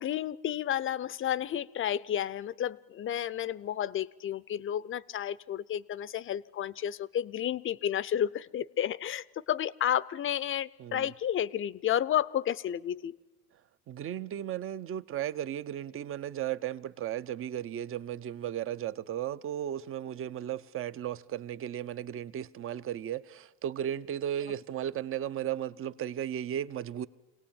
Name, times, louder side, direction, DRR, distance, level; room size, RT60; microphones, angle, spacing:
voice 1, 0.0-13.2, left 10 dB, 40° left, 0.7 m, -31 dB
voice 2, 13.9-27.1, right 10 dB, 40° right, 0.8 m, -35 dB
25.5 x 18.0 x 8.8 m
supercardioid pair, 95°, 33 cm